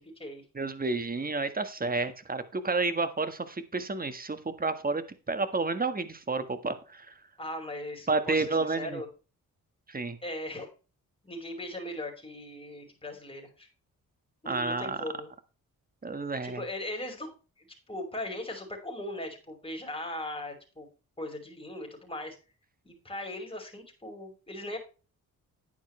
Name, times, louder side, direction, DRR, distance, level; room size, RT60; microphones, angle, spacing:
voice 1, 0.0-0.4 7.4-9.1 10.2-10.7 11.2-13.7 14.4-15.3 16.4-17.3 17.6-20.9 21.2-22.4 22.8-24.8, left 1 dB, 15° left, 1 dB, 5.3 m, -39 dB
voice 2, 0.5-7.1 8.1-9.0 9.9-10.2 14.4-15.0 16.0-16.6, right 3 dB, 25° right, 10 dB, 1.6 m, -30 dB
10.5 x 9.4 x 3.3 m, 0.34 s
cardioid pair, 65°, 34 cm